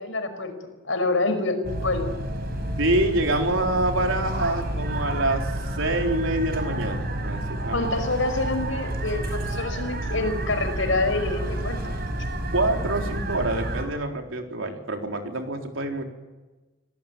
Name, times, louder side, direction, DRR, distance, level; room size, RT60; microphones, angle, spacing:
voice 1, 0.0-2.1 7.7-12.0, left 2 dB, 75° left, 7 dB, 5.3 m, -27 dB
sound 1, 1.6-13.8, right 1 dB, 50° right, 5.2 m, -30 dB
voice 2, 2.8-5.4 5.8-7.9 12.5-16.0, right 2 dB, 80° right, 3 dB, 4.0 m, -26 dB
26.5 x 18.0 x 9.2 m, 1.2 s
head